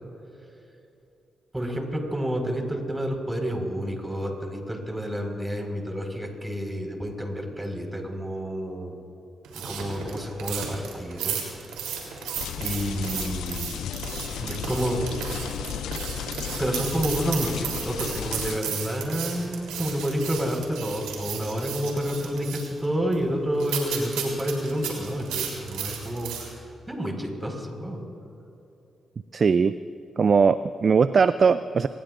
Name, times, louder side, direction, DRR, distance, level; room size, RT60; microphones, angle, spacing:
voice 1, 1.5-9.0 9.5-11.6 12.6-13.7 14.4-15.1 16.6-26.5 26.9-28.0, equal, 15° right, 2 dB, 4.8 m, -29 dB
sound 1, 9.4-26.5, right 7 dB, 90° right, 3.4 m, -34 dB
sound 2, 12.3-18.6, left 10 dB, 85° left, 0.4 m, -34 dB
voice 2, 29.3-29.7 30.2-31.9, right 5 dB, 55° right, 13 dB, 0.4 m, -20 dB
26.0 x 20.5 x 2.6 m, 2.9 s
supercardioid pair, 45°, 0 cm